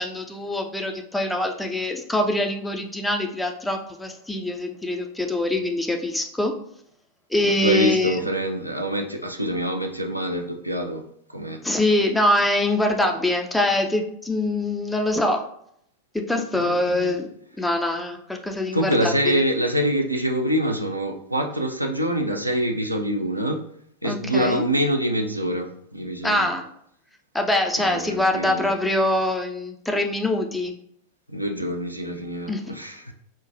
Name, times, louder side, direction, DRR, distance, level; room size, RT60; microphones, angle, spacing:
voice 1, 0.0-6.5 7.3-8.2 11.6-15.4 16.3-17.3 17.6-19.1 24.0-24.6 26.2-26.6 27.3-30.7 32.5-32.6, left 1 dB, 5° left, 3 dB, 0.4 m, -24 dB
voice 2, 7.4-11.0 11.3-11.6 16.5-17.2 18.7-23.6 24.0-26.5 27.8-28.7 31.3-33.1, equal, 90° right, 3 dB, 0.4 m, -25 dB
4.5 x 2.2 x 2.4 m, 0.70 s
figure-of-eight pair, 90°, 0 cm